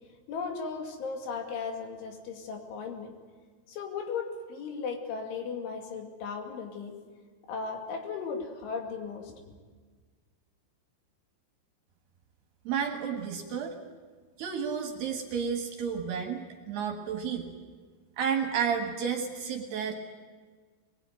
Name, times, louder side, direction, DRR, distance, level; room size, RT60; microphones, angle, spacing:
voice 1, 0.3-3.2 3.7-7.0 7.5-9.3, left 5 dB, 65° left, 3 dB, 4.6 m, -36 dB
voice 2, 12.7-13.7 14.4-17.5 18.2-19.9, right 7 dB, 65° right, 3 dB, 3.1 m, -31 dB
24.0 x 20.0 x 9.3 m, 1.5 s
omnidirectional pair, 6.0 m